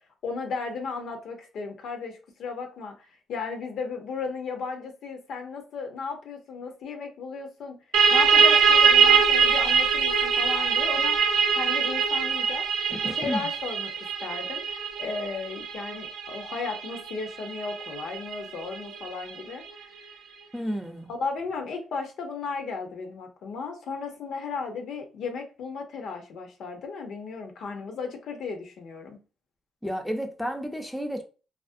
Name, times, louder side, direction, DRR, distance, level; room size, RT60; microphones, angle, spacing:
voice 1, 0.2-7.8 8.1-11.2 11.5-12.6 13.0-20.0 21.1-29.2, left 4 dB, 70° left, 0.6 m, -35 dB
sound 1, 7.9-19.3, right 6 dB, 70° right, 0.5 m, -23 dB
voice 2, 12.9-13.5 20.5-21.1 29.8-31.2, equal, 5° left, 0.4 m, -31 dB
2.4 x 2.0 x 2.5 m
cardioid pair, 90°, 0 cm